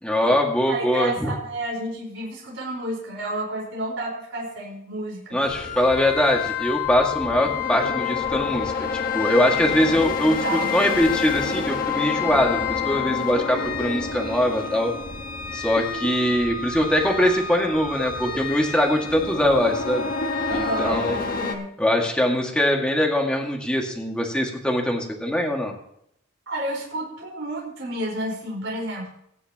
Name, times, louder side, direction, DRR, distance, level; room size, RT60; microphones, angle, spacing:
voice 1, 0.0-1.3 5.3-10.4 10.7-14.9 15.5-20.1 20.5-21.2 21.8-25.7, left 1 dB, 5° left, 0 dB, 2.1 m, -22 dB
voice 2, 0.7-5.4 9.8-9.9 10.2-10.7 20.5-21.7 26.5-29.1, right 1 dB, 65° right, -3 dB, 4.8 m, -31 dB
sound 1, 5.4-21.6, left 5 dB, 45° left, 1.5 m, -28 dB
22.5 x 9.8 x 3.0 m, 0.74 s
head